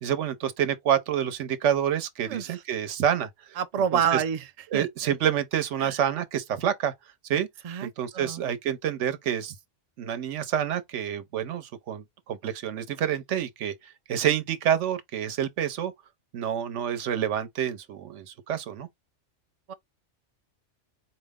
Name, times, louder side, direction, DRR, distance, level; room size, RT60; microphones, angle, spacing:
voice 1, 0.0-3.3 3.9-4.2 4.7-6.9 7.3-7.5 7.8-9.6 10.0-13.7 14.1-15.9 16.3-18.9, right 9 dB, 75° right, 1.0 m, -28 dB
voice 2, 2.2-2.6 3.6-4.5 4.7-4.9 5.8-6.0 7.6-8.4 19.7-19.8, right 8 dB, 60° right, 0.4 m, -28 dB
4.5 x 2.0 x 3.5 m
omnidirectional pair, 1.3 m